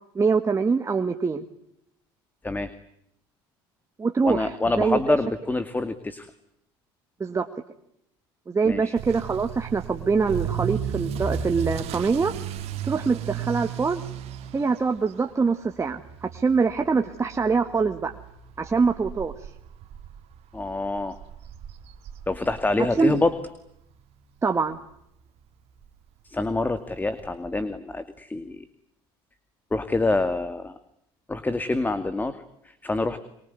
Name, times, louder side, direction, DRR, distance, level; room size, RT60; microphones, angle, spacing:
voice 1, 0.2-1.4 4.0-5.2 7.2-7.5 8.5-12.3 12.8-14.0 14.5-18.2 18.6-19.3 23.0-23.2 24.4-24.8, right 4 dB, 25° right, 5 dB, 1.8 m, -24 dB
voice 2, 4.2-6.3 8.6-9.0 20.5-21.2 22.3-23.3 26.2-28.6 29.7-30.8 31.3-33.2, left 2 dB, 15° left, 11 dB, 2.2 m, -26 dB
Motor vehicle (road) / Accelerating revving vroom, 9.0-23.8 24.1-24.5 25.0-25.1 25.4-25.5 25.8-25.9 27.2-27.3, right 8 dB, 60° right, 2.7 m, -35 dB
24.5 x 24.0 x 9.7 m, 0.76 s
hypercardioid pair, 75°, 12 cm